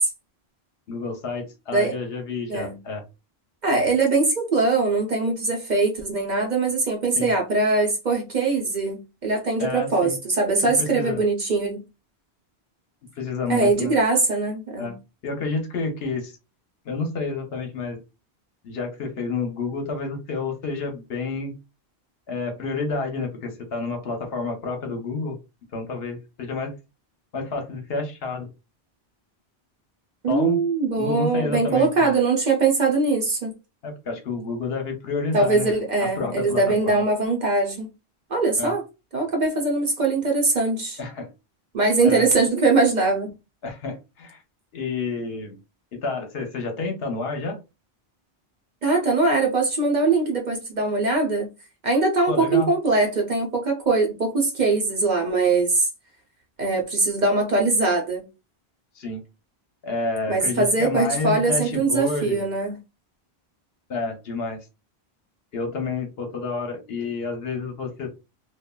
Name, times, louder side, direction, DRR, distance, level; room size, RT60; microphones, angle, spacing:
voice 1, 0.9-3.0 7.2-7.3 9.6-10.2 10.6-11.2 13.2-13.9 14.8-15.0 15.2-16.3 16.9-18.0 18.6-21.5 22.3-25.4 25.7-26.7 27.3-28.5 30.3-30.6 30.9-32.1 33.8-35.7 36.2-37.0 38.6-38.7 41.0-41.3 42.0-42.2 43.6-44.4 44.7-45.6 45.9-47.6 52.3-52.7 59.0-59.2 59.8-62.4 63.9-64.6 65.5-68.1, left 3 dB, 70° left, 1.0 m, -29 dB
voice 2, 3.6-11.8 13.5-14.9 30.2-33.5 35.3-37.9 38.3-38.8 39.1-41.0 41.7-43.3 48.8-51.5 51.8-55.9 56.6-58.2 60.3-62.8, right 3 dB, 50° right, 0.7 m, -22 dB
3.2 x 2.2 x 2.2 m
omnidirectional pair, 1.1 m